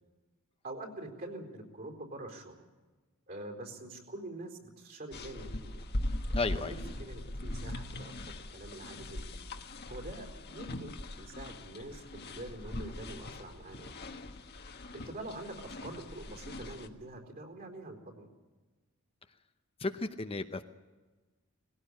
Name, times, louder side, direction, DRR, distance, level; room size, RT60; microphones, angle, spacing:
voice 1, 0.6-2.5 3.3-5.8 6.6-9.3 9.9-13.9 14.9-18.3, right 1 dB, 45° right, 2 dB, 4.2 m, -45 dB
sound 1, 5.1-16.9, left 1 dB, 50° left, 1.4 m, -40 dB
voice 2, 6.3-6.7 19.8-20.6, left 3 dB, 25° left, 8 dB, 0.8 m, -33 dB
20.0 x 17.0 x 8.8 m, 1.3 s
head